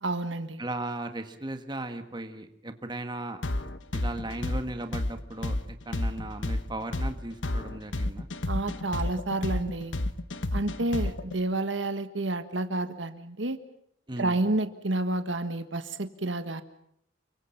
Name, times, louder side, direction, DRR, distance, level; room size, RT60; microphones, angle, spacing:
voice 1, 0.0-0.6 8.5-10.0 10.5-13.6 14.2-16.6, right 2 dB, 75° right, 10 dB, 1.6 m, -30 dB
voice 2, 0.6-3.4 3.9-8.3 14.1-14.4, right 2 dB, 25° right, 7 dB, 1.7 m, -37 dB
sound 1, 3.4-11.4, left 1 dB, 70° left, 1.3 m, -30 dB
30.0 x 24.0 x 5.9 m, 0.71 s
head